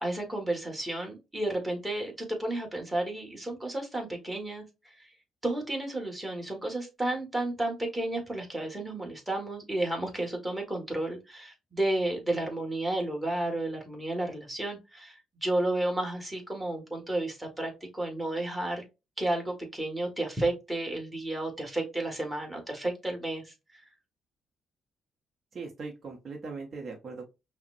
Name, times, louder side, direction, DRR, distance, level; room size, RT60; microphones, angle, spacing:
voice 1, 0.0-4.6 5.0-5.1 5.4-18.8 19.2-23.8, right 1 dB, 15° right, 1 dB, 1.7 m, -32 dB
voice 2, 25.5-27.3, right 4 dB, 45° right, 1 dB, 0.9 m, -40 dB
5.6 x 2.1 x 2.6 m, 0.25 s
cardioid pair, 90°, 0 cm